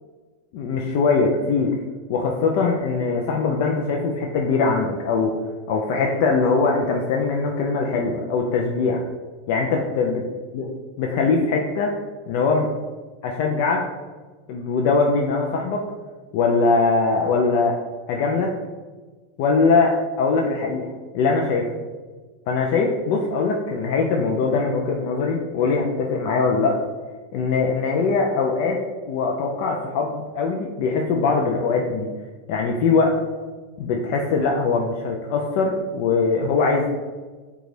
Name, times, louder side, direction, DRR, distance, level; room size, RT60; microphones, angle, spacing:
voice 1, 0.5-1.7 2.1-5.3 5.7-9.0 9.5-10.2 10.5-10.6 11.0-11.9 12.3-12.7 13.2-13.9 14.5-15.8 16.3-17.8 18.1-18.6 19.4-21.7 22.5-26.8 27.3-32.1 32.5-33.2 33.8-37.0, left 4 dB, 60° left, 1 dB, 0.4 m, -21 dB
3.2 x 2.3 x 3.8 m, 1.4 s
supercardioid pair, 130°, 0 cm